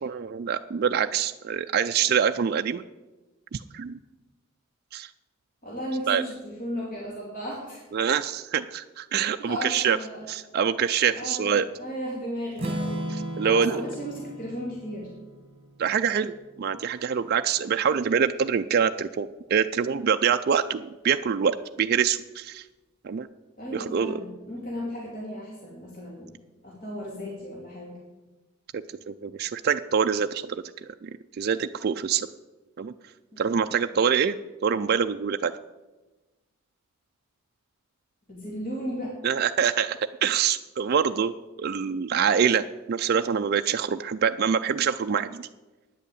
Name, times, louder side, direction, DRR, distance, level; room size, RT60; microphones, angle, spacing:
voice 1, 0.0-2.8 3.5-4.0 4.9-5.1 6.1-6.2 7.9-10.0 10.3-11.7 13.3-13.7 15.8-16.3 16.6-22.6 23.0-23.3 23.7-24.2 29.1-30.6 31.0-31.1 31.4-32.3 32.8-32.9 33.4-34.4 34.6-35.5 39.2-45.5, right 7 dB, 45° right, 7 dB, 0.3 m, -25 dB
voice 2, 5.6-7.9 9.4-10.2 11.1-15.1 23.6-26.3 26.6-28.0 33.3-33.4 33.9-34.0 38.3-39.2, equal, 40° left, -4 dB, 2.5 m, -35 dB
Strum, 12.6-16.5, right 1 dB, 25° right, 2.0 m, -36 dB
9.3 x 8.3 x 8.5 m, 1.2 s
head